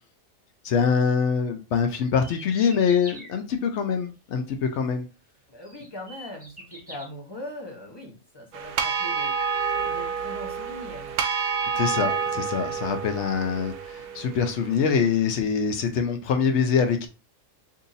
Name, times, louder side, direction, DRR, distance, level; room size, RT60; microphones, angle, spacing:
voice 1, 0.6-5.1 11.7-17.1, left 6 dB, 65° left, 0.8 m, -24 dB
sound 1, 2.1-3.3 5.0-5.1 5.6-7.0, equal, 5° right, 1.1 m, -44 dB
voice 2, 5.5-11.3, left 1 dB, 25° left, 0.7 m, -41 dB
sound 2, 8.5-14.9, right 6 dB, 80° right, 1.0 m, -29 dB
2.7 x 2.6 x 3.9 m
omnidirectional pair, 1.4 m